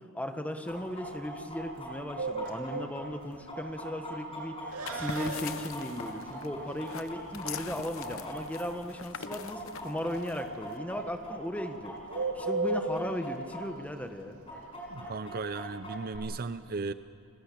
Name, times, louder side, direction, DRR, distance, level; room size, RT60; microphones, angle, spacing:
voice 1, 0.1-11.9 12.3-14.4, equal, 5° left, 6 dB, 1.4 m, -37 dB
Chicken rooster, 0.7-9.0 9.3-13.6 13.9-14.0 14.5-16.2, equal, 25° left, 6.6 m, -42 dB
Bird, 2.2-15.2, right 3 dB, 75° right, 2.6 m, -38 dB
sound 1, 4.7-10.8, left 6 dB, 65° left, 0.9 m, -43 dB
voice 2, 14.9-16.9, right 4 dB, 45° right, 13 dB, 0.6 m, -36 dB
29.5 x 18.5 x 8.6 m, 2.6 s
head